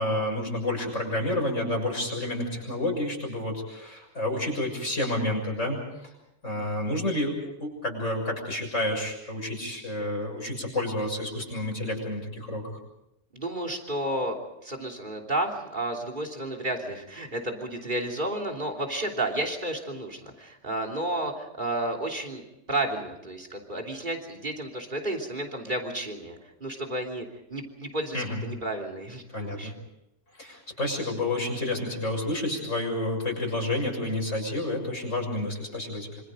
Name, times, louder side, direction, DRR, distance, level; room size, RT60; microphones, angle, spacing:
voice 1, 0.0-6.1 6.4-7.4 7.6-12.8 28.1-28.4 29.3-29.7 30.4-36.1, left 1 dB, 85° left, 2 dB, 6.9 m, -30 dB
voice 2, 13.3-22.4 22.7-27.3 27.5-29.7, right 1 dB, 40° right, 1 dB, 3.5 m, -32 dB
26.0 x 26.0 x 5.2 m, 0.85 s
omnidirectional pair, 1.2 m